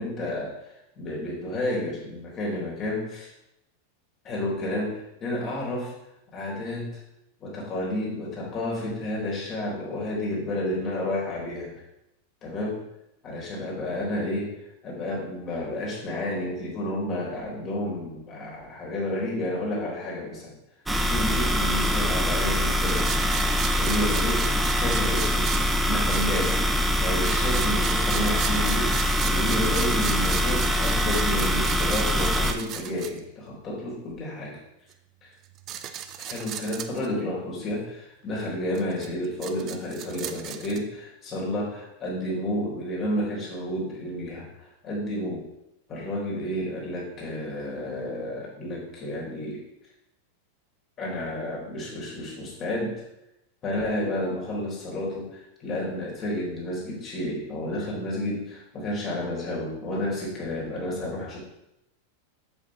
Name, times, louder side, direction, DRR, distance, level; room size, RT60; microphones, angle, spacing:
voice 1, 0.0-3.3 4.2-5.9 6.3-6.9 7.4-11.8 12.4-12.8 13.2-14.5 14.8-20.5 21.0-23.1 23.8-25.5 25.8-26.6 27.0-34.6 35.2-35.3 36.3-45.4 45.9-49.6 51.0-53.0 53.6-61.4, left 1 dB, 30° left, -3 dB, 4.0 m, -31 dB
sound 1, 20.9-32.5, equal, 5° right, 0.8 m, -24 dB
sound 2, 22.9-26.8 27.1-33.2 34.9-35.0 35.5-37.1 38.8-40.8, right 10 dB, 35° right, 0.7 m, -36 dB
8.0 x 7.1 x 4.8 m, 0.84 s
figure-of-eight pair, 90°, 0 cm